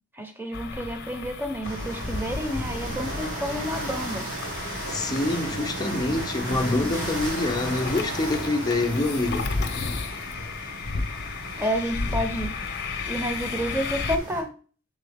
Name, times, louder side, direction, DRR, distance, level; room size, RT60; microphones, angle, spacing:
voice 1, 0.1-4.3 11.6-12.5 13.1-14.5, equal, 10° right, 0.9 m, -30 dB
sound 1, 0.5-14.2, left 4 dB, 50° left, 0.8 m, -34 dB
sound 2, 1.6-14.4, right 1 dB, 75° right, 3.4 m, -35 dB
voice 2, 4.9-9.5, left 2 dB, 20° left, 0.6 m, -26 dB
6.9 x 3.8 x 3.5 m
head